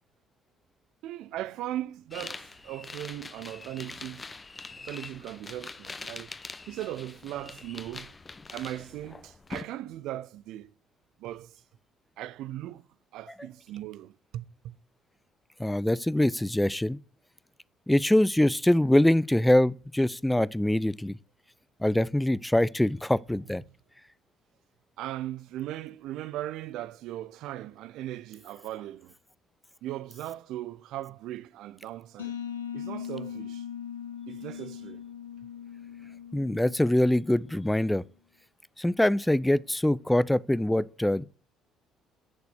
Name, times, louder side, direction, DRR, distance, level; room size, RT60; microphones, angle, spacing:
voice 1, 1.0-4.2 4.8-6.3 6.7-8.1 8.5-10.7 11.2-11.6 12.2-12.8 13.1-14.8 23.6-23.7 25.0-29.1 29.8-32.4 32.7-33.7 34.3-35.0, right 13 dB, 65° right, 0.7 m, -38 dB
sound 1, 2.1-9.6, left 3 dB, 25° left, 1.2 m, -43 dB
voice 2, 15.6-17.0 17.9-21.2 21.8-23.6 36.3-38.0 38.8-41.2, left 1 dB, 5° left, 0.6 m, -24 dB
sound 2, 32.2-37.8, left 8 dB, 85° left, 1.7 m, -40 dB
11.0 x 6.9 x 8.2 m
figure-of-eight pair, 50°, 0 cm